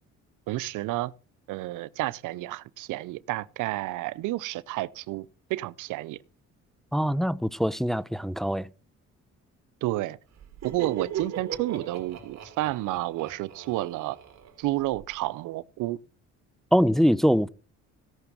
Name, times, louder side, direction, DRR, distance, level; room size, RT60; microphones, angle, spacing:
voice 1, 0.5-1.1 1.5-6.2 9.8-10.2 10.6-14.2 14.6-16.0, right 17 dB, 90° right, 0.6 m, -30 dB
voice 2, 6.9-8.7 16.7-17.5, equal, ahead, 0.6 m, -23 dB
Laughter, 10.4-15.1, right 8 dB, 60° right, 3.0 m, -39 dB
17.0 x 6.0 x 5.9 m
cardioid pair, 90°, 30 cm